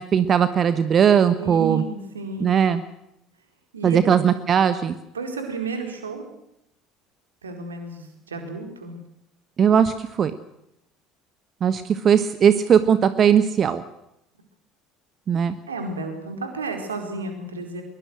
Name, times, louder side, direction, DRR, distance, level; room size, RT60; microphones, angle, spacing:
voice 1, 0.0-1.8 2.4-2.8 3.8-4.9 9.6-10.3 11.6-13.8 15.3-15.5, right 8 dB, 35° right, 13 dB, 1.2 m, -19 dB
voice 2, 1.4-2.5 3.7-4.0 5.1-6.3 7.4-9.0 15.7-17.8, right 4 dB, 75° right, 5 dB, 4.5 m, -32 dB
22.5 x 22.5 x 6.5 m, 0.83 s
figure-of-eight pair, 60°, 0 cm